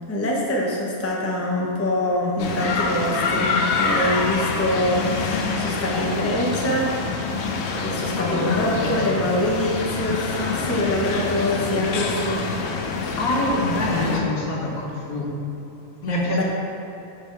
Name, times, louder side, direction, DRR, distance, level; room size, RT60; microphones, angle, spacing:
voice 1, 0.1-7.0 7.8-12.5 16.1-16.4, left 1 dB, 15° left, -2 dB, 0.5 m, -24 dB
sound 1, 2.4-14.2, left 4 dB, 60° left, 0.8 m, -26 dB
voice 2, 8.2-9.2 13.2-15.3 16.0-16.4, left 2 dB, 90° left, -2 dB, 1.5 m, -25 dB
6.6 x 3.3 x 5.6 m, 2.9 s
omnidirectional pair, 1.5 m